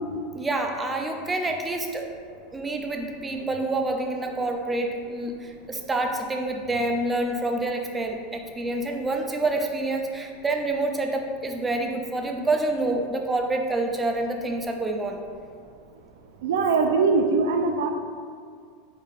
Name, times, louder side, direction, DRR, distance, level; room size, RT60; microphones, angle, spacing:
voice 1, 0.3-2.0 2.5-15.2, right 2 dB, 10° right, 3 dB, 0.3 m, -27 dB
voice 2, 16.4-17.9, right 4 dB, 85° right, 5 dB, 0.4 m, -21 dB
4.2 x 3.5 x 2.5 m, 2.1 s
supercardioid pair, 160°, 0 cm